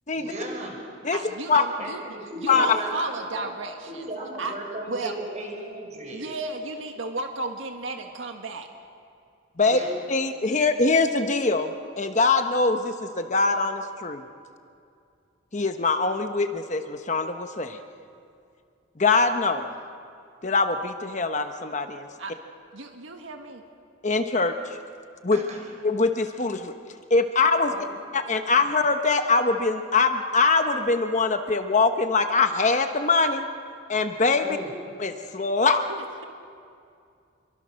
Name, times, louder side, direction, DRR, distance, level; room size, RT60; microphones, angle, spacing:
voice 1, 0.1-0.8 1.8-3.5 3.9-6.2 9.7-9.9 25.3-25.6 27.7-27.8 34.4-34.7, right 1 dB, 35° right, 1 dB, 5.5 m, -36 dB
voice 2, 1.1-2.0 2.4-4.0 4.4-4.5 4.9-5.1 6.1-8.7 22.2-22.4 22.7-23.6 35.9-36.2, right 2 dB, 75° right, 4 dB, 1.7 m, -33 dB
voice 3, 10.1-14.2 15.5-17.8 19.0-19.7 20.4-22.1 24.0-24.8 25.2-25.4 25.8-26.7 27.1-27.7 28.1-33.5 33.9-34.5 35.0-35.8, left 3 dB, 35° left, 7 dB, 1.0 m, -23 dB
28.0 x 23.5 x 6.4 m, 2.4 s
head